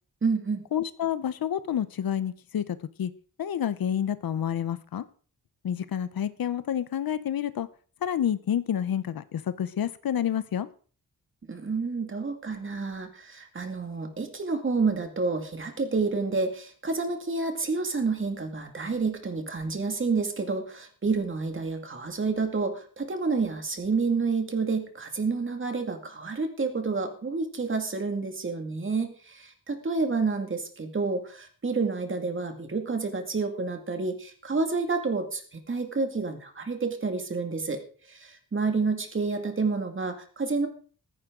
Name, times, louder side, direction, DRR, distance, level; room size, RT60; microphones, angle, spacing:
voice 1, 0.2-0.6 11.5-37.8 38.1-40.7, right 4 dB, 35° right, 5 dB, 2.2 m, -29 dB
voice 2, 0.7-3.1 3.4-5.0 5.6-7.7 8.0-10.7, left 9 dB, 70° left, 14 dB, 0.9 m, -29 dB
15.0 x 15.0 x 3.9 m, 0.42 s
wide cardioid pair, 165°, 36 cm